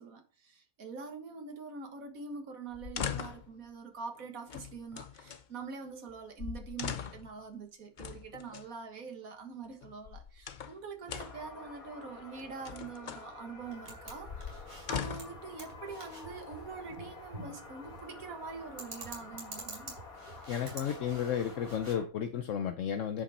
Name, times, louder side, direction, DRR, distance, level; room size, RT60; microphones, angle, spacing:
voice 1, 0.0-19.9, right 5 dB, 80° right, 1.9 m, -44 dB
sound 1, 2.7-3.5 4.5-5.4 6.1-6.2 6.4-7.3 8.0-8.7 9.8-10.8 11.1-11.5 12.4-13.3 14.1-15.4 16.3-17.0, left 8 dB, 50° left, 0.6 m, -40 dB
sound 2, 11.2-22.1, left 3 dB, 90° left, 2.4 m, -50 dB
sound 3, 13.6-21.9, right 2 dB, 60° right, 3.4 m, -49 dB
voice 2, 20.5-23.2, left 8 dB, 65° left, 1.0 m, -33 dB
9.9 x 5.6 x 4.2 m
omnidirectional pair, 1.4 m